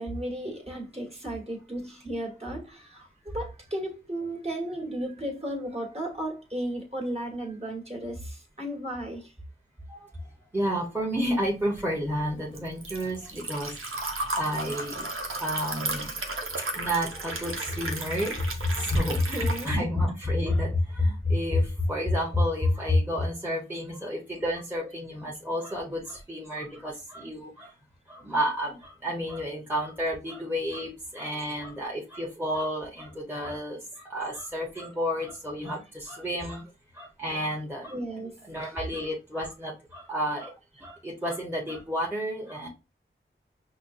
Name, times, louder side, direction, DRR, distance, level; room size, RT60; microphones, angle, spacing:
voice 1, 0.0-9.3 19.1-19.8 37.9-38.7, right 1 dB, 30° right, 1.7 m, -35 dB
voice 2, 10.5-15.0 15.4-16.2 16.7-27.7 28.1-36.7 36.9-38.0 38.5-40.5 40.8-42.7, left 1 dB, 10° right, 1.3 m, -30 dB
Liquid, 11.5-19.7, right 2 dB, 85° right, 0.8 m, -34 dB
5.4 x 2.3 x 2.7 m
wide cardioid pair, 45°, 21 cm